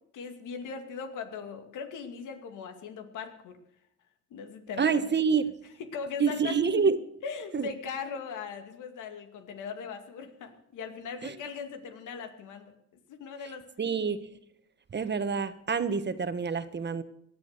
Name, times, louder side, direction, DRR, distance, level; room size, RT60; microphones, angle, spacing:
voice 1, 0.1-3.6 4.3-5.1 5.8-6.9 7.2-12.7 13.1-13.7, left 6 dB, 85° left, 6 dB, 2.4 m, -39 dB
voice 2, 4.8-5.5 6.2-7.0 7.5-7.7 11.2-11.3 13.8-14.3 14.9-17.0, right 5 dB, 35° right, 11 dB, 1.3 m, -27 dB
18.5 x 11.5 x 6.7 m, 0.75 s
cardioid pair, 90°, 30 cm